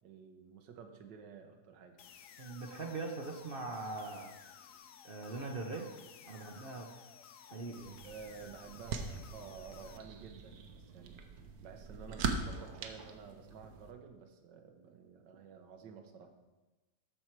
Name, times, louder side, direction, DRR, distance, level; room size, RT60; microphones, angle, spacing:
voice 1, 0.0-2.0 8.0-11.2 11.6-16.3, right 6 dB, 85° right, 6 dB, 1.6 m, -52 dB
sound 1, 2.0-10.0, left 8 dB, 65° left, 0.8 m, -56 dB
voice 2, 2.4-4.3 5.0-5.9 6.3-6.9 7.5-8.0, right 3 dB, 50° right, 2 dB, 0.7 m, -41 dB
sound 2, 7.8-13.9, right 5 dB, 65° right, 1.2 m, -42 dB
13.0 x 4.5 x 4.5 m, 1.2 s
omnidirectional pair, 1.8 m